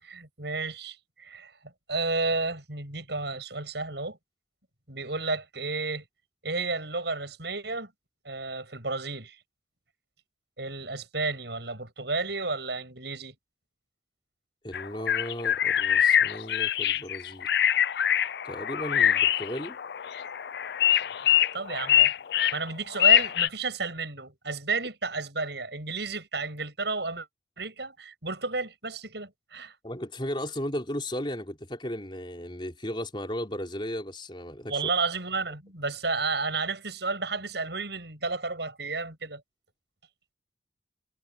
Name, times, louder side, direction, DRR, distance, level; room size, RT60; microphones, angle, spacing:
voice 1, 0.0-1.5 1.9-4.2 4.9-6.0 6.4-7.9 8.2-9.4 10.6-13.3 21.5-22.1 22.5-27.3 27.6-29.8 34.7-39.4, right 3 dB, 65° right, 7.8 m, -32 dB
voice 2, 14.6-17.5 18.4-19.8 29.8-34.8, equal, 25° left, 4.6 m, -35 dB
sound 1, 14.7-23.5, left 10 dB, 60° left, 0.4 m, -24 dB
head